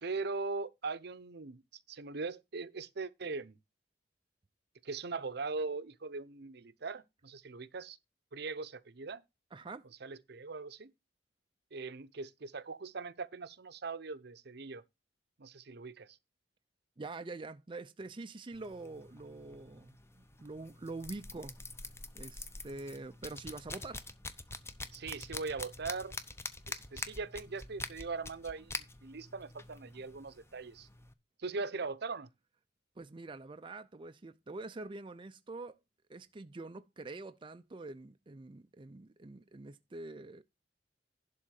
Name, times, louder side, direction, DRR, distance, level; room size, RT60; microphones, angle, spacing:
voice 1, 0.0-1.6 1.9-3.5 4.8-8.0 8.3-9.2 10.0-10.9 11.7-14.8 15.4-16.2 24.9-26.2 26.7-30.9 31.4-32.3, right 4 dB, 65° right, 0.8 m, -40 dB
voice 2, 9.5-9.8 17.0-21.6 22.1-24.0 33.0-35.8 36.1-40.4, right 3 dB, 30° right, 0.5 m, -45 dB
sound 1, 18.5-31.1, left 3 dB, 15° left, 0.8 m, -46 dB
11.5 x 3.8 x 6.3 m
head